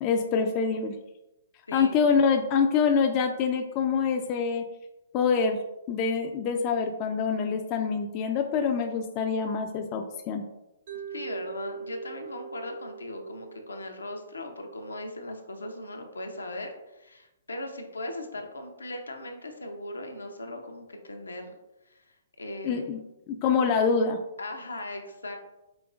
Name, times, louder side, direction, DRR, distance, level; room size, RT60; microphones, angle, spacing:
voice 1, 0.0-1.0 1.7-4.6 5.1-5.6 5.9-10.4 22.6-23.0 23.4-24.2, left 5 dB, 30° left, 4 dB, 0.3 m, -25 dB
Mallet percussion, 10.9-15.0, right 6 dB, 50° right, 0.6 m, -42 dB
voice 2, 11.1-21.5 21.9-22.8 24.4-25.4, left 1 dB, 80° left, 4 dB, 0.6 m, -38 dB
5.1 x 2.9 x 2.4 m, 0.94 s
figure-of-eight pair, 125°, 0 cm